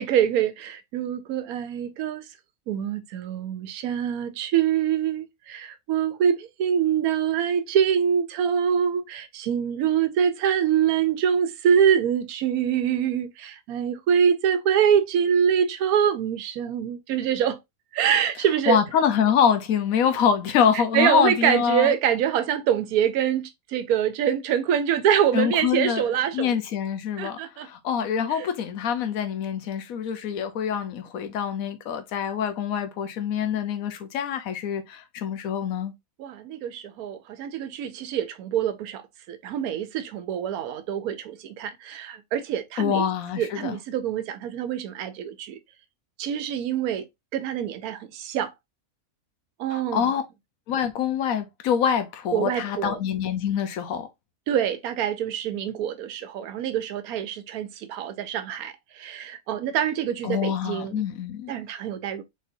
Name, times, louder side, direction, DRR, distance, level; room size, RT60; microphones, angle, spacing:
voice 1, 0.0-2.3 2.7-17.6 17.9-18.8 20.7-26.6 27.2-27.7 28.3-28.5 36.2-43.1 43.4-45.6 46.2-47.1 47.3-48.5 49.6-50.1 52.3-53.0 54.5-61.1 61.5-62.2, right 8 dB, 80° right, 1.1 m, -25 dB
voice 2, 18.7-21.9 25.3-26.0 26.3-35.9 42.8-43.8 49.7-50.2 50.7-54.1 60.2-61.5, left 8 dB, 70° left, 1.2 m, -25 dB
4.0 x 3.7 x 2.6 m
omnidirectional pair, 1.5 m